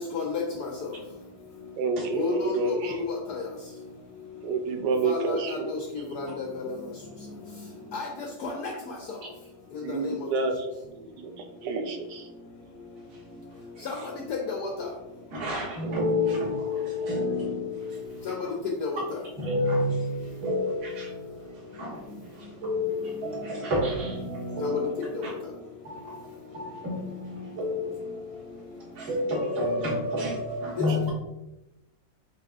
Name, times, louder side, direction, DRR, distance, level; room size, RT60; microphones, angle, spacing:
voice 1, 0.1-0.7 2.1-2.7 3.1-3.4 5.0-5.6 6.2-6.5 7.9-8.1 8.4-8.5 13.9-14.0 14.3-14.7 18.3-18.4 18.8-18.9 24.6-24.7, left 4 dB, 75° left, 0 dB, 0.8 m, -30 dB
voice 2, 1.7-3.0 4.4-5.8 9.8-10.7 11.0-12.3 30.9-31.0, right 4 dB, 70° right, 4 dB, 1.1 m, -29 dB
voice 3, 15.3-18.3 19.4-24.9 25.2-25.3 25.8-31.1, left 2 dB, 45° right, -7 dB, 1.9 m, -30 dB
7.3 x 2.7 x 2.3 m, 0.93 s
omnidirectional pair, 2.3 m